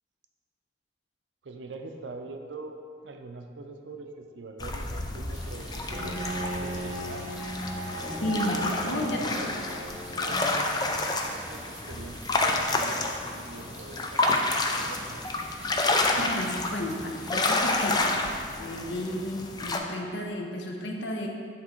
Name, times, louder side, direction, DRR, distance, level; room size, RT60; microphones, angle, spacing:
voice 1, 1.4-2.8 3.0-6.2 6.5-7.3 8.5-9.5 10.2-14.4 14.7-15.4, right 3 dB, 90° right, 5 dB, 0.5 m, -42 dB
sound 1, 4.6-19.8, left 2 dB, 20° left, 0.4 m, -29 dB
sound 2, 5.3-18.1, right 3 dB, 40° right, 0.8 m, -50 dB
Bowed string instrument, 5.9-10.7, right 1 dB, 15° right, 1.5 m, -36 dB
voice 2, 8.2-9.2 16.2-18.1 18.6-21.3, left 1 dB, 80° left, 1 dB, 0.8 m, -32 dB
8.4 x 3.6 x 4.4 m, 2.2 s
head